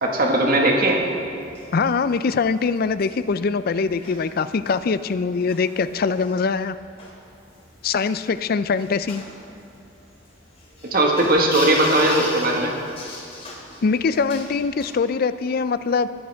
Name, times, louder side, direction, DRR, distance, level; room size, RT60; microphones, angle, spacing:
voice 1, 0.0-1.0 10.8-12.7, right 1 dB, 50° right, 0 dB, 1.7 m, -18 dB
sound 1, 0.7-14.9, left 2 dB, 30° left, 2.8 m, -39 dB
voice 2, 1.7-6.8 7.8-9.2 13.8-16.1, left 5 dB, 50° left, 13 dB, 0.4 m, -22 dB
19.5 x 9.5 x 3.5 m, 2.5 s
head